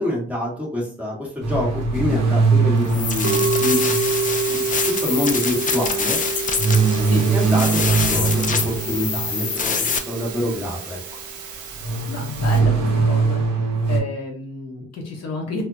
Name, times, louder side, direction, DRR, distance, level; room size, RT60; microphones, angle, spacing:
voice 1, 0.0-4.0 4.5-6.2 7.3-11.0, left 1 dB, 5° right, -4 dB, 1.1 m, -26 dB
sound 1, 1.4-4.9 6.6-9.7 11.8-14.0, right 4 dB, 65° right, 1.0 m, -21 dB
sound 2, 2.9-10.0, left 6 dB, 30° left, 0.4 m, -26 dB
Musical instrument, 3.1-12.6, right 5 dB, 90° right, 0.7 m, -27 dB
voice 2, 12.1-15.6, left 3 dB, 55° left, 1 dB, 0.9 m, -31 dB
2.1 x 2.1 x 3.6 m, 0.43 s
cardioid pair, 90°, 30 cm